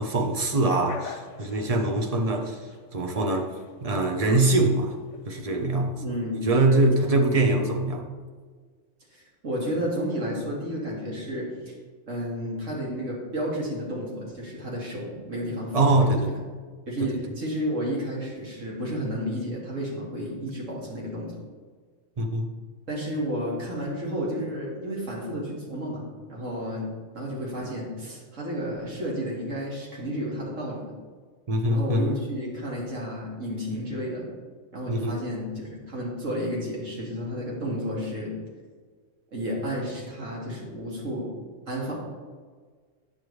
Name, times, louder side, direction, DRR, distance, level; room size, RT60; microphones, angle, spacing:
voice 1, 0.0-2.6 2.9-3.5 3.8-4.9 5.3-6.0 6.4-8.0 15.7-16.3 17.0-17.1 22.2-22.5 31.5-32.2 34.9-35.2, right 2 dB, 35° right, 3 dB, 0.7 m, -23 dB
sound 1, 0.7-5.7, left 7 dB, 75° left, 0.9 m, -44 dB
voice 2, 6.0-6.4 7.4-7.6 9.1-11.7 12.1-16.4 16.9-21.3 22.9-26.9 27.1-30.9 31.7-34.3 34.7-38.3 39.3-41.3 41.7-41.9, equal, 80° right, -4 dB, 2.2 m, -32 dB
8.8 x 6.8 x 3.1 m, 1.5 s
omnidirectional pair, 1.3 m